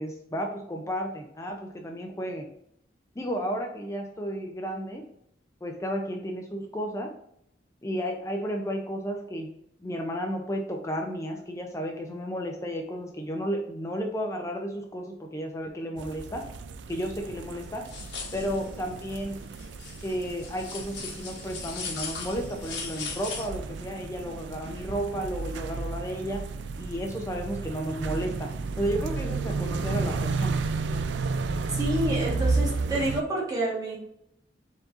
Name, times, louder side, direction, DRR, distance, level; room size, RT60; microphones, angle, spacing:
voice 1, 0.0-2.5 3.2-5.0 5.6-7.1 7.8-9.5 9.8-16.4 16.9-17.8 18.3-19.4 20.0-26.4 26.8-28.5 28.8-30.6, equal, 15° left, 2 dB, 0.5 m, -33 dB
sound 1, 16.0-33.2, right 4 dB, 70° right, 0.4 m, -32 dB
sound 2, 17.9-18.7 19.0-19.1 19.6-23.5, left 5 dB, 70° left, 1.2 m, -38 dB
voice 2, 31.7-34.0, right 1 dB, 20° right, -4 dB, 1.4 m, -28 dB
4.6 x 4.0 x 2.5 m, 0.74 s
head